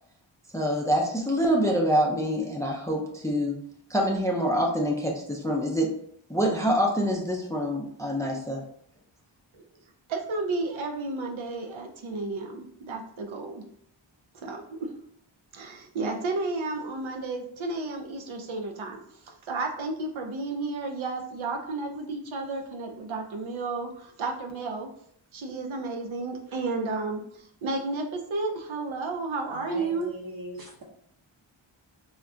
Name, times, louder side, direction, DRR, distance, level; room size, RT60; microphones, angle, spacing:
voice 1, 0.5-3.6 3.9-5.9 6.3-8.6, equal, 5° left, 0 dB, 0.4 m, -26 dB
voice 2, 10.1-13.6 14.3-14.9 15.5-19.0 19.2-24.9 25.3-30.1, right 3 dB, 80° right, 3 dB, 0.6 m, -32 dB
voice 3, 29.5-30.8, equal, 50° right, 1 dB, 0.8 m, -39 dB
2.4 x 2.2 x 3.7 m, 0.67 s
wide cardioid pair, 75°, 47 cm